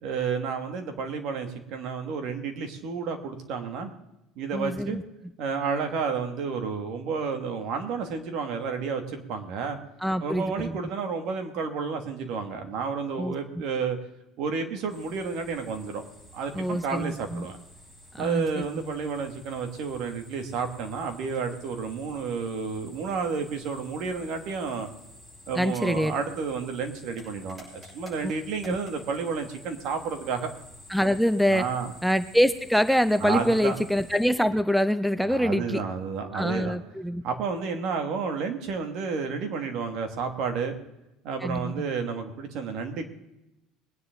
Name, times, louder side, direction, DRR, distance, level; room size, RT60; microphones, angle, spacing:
voice 1, 0.0-3.9 4.4-5.0 5.4-9.8 10.2-14.0 14.4-16.0 16.3-17.6 18.2-24.9 25.5-30.5 31.5-31.9 33.2-33.8 35.3-36.7 37.2-40.8 41.2-43.0, right 5 dB, 60° right, 5 dB, 2.5 m, -31 dB
voice 2, 4.5-5.0 10.0-10.8 13.2-13.3 16.5-17.5 18.1-18.7 25.6-26.1 28.2-28.3 28.7-28.8 30.9-31.7 32.0-35.8 36.3-37.2 41.4-41.9, equal, ahead, 14 dB, 0.5 m, -25 dB
sound 1, 14.9-34.3, left 1 dB, 20° right, 6.6 m, -50 dB
22.0 x 10.0 x 4.0 m, 0.91 s
cardioid pair, 125°, 0 cm